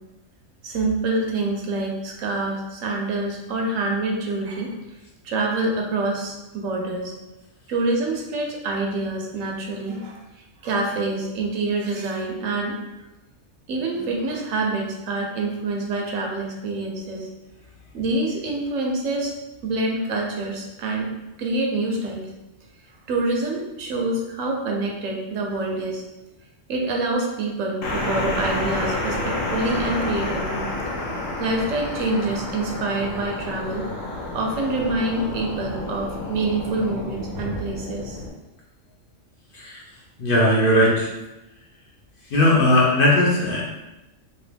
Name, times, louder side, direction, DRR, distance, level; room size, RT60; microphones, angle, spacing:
voice 1, 0.6-4.7 5.2-7.2 7.7-10.2 10.6-12.8 13.7-17.3 17.9-19.3 19.6-21.1 21.4-22.3 23.1-26.0 26.7-30.6 31.4-33.9 34.3-38.2, right 2 dB, 85° right, 0 dB, 1.1 m, -26 dB
sound 1, 27.8-38.3, left 2 dB, 85° left, 1.2 m, -30 dB
voice 2, 40.2-41.1 42.3-43.6, left 1 dB, 50° left, -4 dB, 0.8 m, -18 dB
2.9 x 2.7 x 3.3 m, 0.99 s
omnidirectional pair, 1.3 m